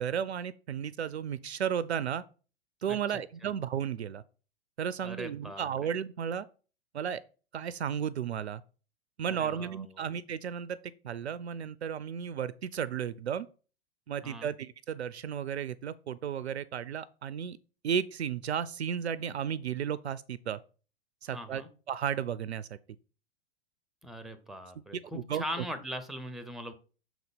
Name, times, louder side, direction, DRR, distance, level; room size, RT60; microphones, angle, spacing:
voice 1, 0.0-2.2 2.8-4.2 4.8-6.5 6.9-7.2 7.5-8.6 9.2-10.8 11.0-13.5 14.1-17.6 17.8-20.6 21.2-21.6 21.9-22.8 25.1-25.4, right 8 dB, 75° right, 0.5 m, -34 dB
voice 2, 5.0-5.7 9.3-10.1 14.2-14.5 21.3-21.7 24.0-26.7, equal, ahead, 0.8 m, -40 dB
6.1 x 4.1 x 5.1 m
figure-of-eight pair, 95°, 33 cm